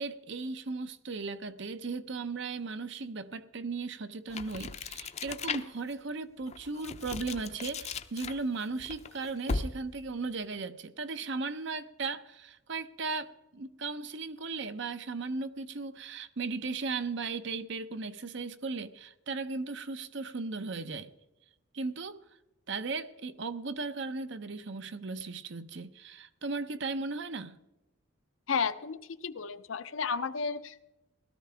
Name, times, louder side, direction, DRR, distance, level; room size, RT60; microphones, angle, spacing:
voice 1, 0.0-21.1 21.7-22.2 22.7-27.6, right 4 dB, 60° right, 12 dB, 0.8 m, -36 dB
sound 1, 4.3-5.9 6.4-10.0, left 4 dB, 35° left, 0.6 m, -37 dB
voice 2, 28.5-30.9, left 5 dB, 75° left, 12 dB, 0.7 m, -33 dB
17.0 x 13.5 x 3.4 m, 0.97 s
head